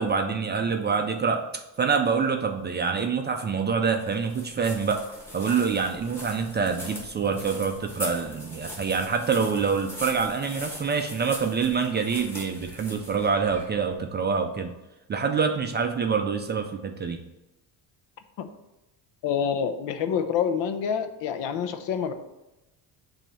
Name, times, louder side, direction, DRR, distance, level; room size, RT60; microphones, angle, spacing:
voice 1, 0.0-5.0 5.3-14.7 15.1-17.2, right 5 dB, 25° right, 4 dB, 0.3 m, -26 dB
sound 1, 4.1-14.0, equal, 5° left, 1.3 m, -41 dB
voice 2, 19.2-22.1, left 7 dB, 75° left, 8 dB, 0.8 m, -27 dB
7.2 x 2.7 x 5.5 m, 0.96 s
cardioid pair, 145°, 44 cm